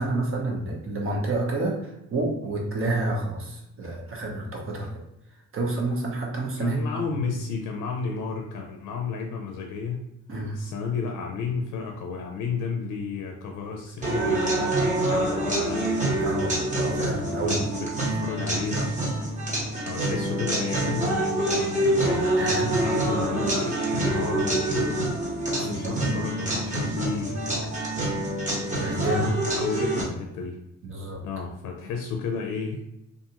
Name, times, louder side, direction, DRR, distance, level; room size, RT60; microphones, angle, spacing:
voice 1, 0.0-4.9 5.5-7.3 10.3-10.6 16.2-17.6 22.4-23.0 25.6-26.0 28.7-29.3 30.8-31.2, right 2 dB, 45° right, -1 dB, 0.9 m, -29 dB
voice 2, 6.6-10.0 10.5-14.8 15.0-16.0 17.4-18.9 19.9-22.3 22.8-25.2 25.6-27.4 29.1-30.6 31.2-32.8, left 5 dB, 85° left, 2 dB, 0.5 m, -32 dB
sound 1, 14.0-30.0, right 1 dB, 25° right, 1.0 m, -26 dB
2.5 x 2.3 x 2.8 m, 0.88 s
cardioid pair, 90°, 30 cm